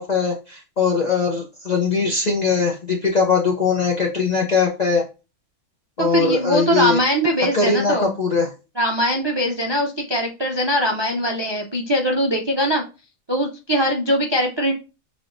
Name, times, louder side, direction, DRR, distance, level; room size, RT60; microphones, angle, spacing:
voice 1, 0.0-5.0 6.0-7.0 7.5-8.5, left 4 dB, 50° left, 0 dB, 0.5 m, -20 dB
voice 2, 6.0-8.1 8.8-12.8 13.3-14.7, equal, 40° right, 1 dB, 0.3 m, -21 dB
5.9 x 3.3 x 2.6 m, 0.31 s
omnidirectional pair, 1.5 m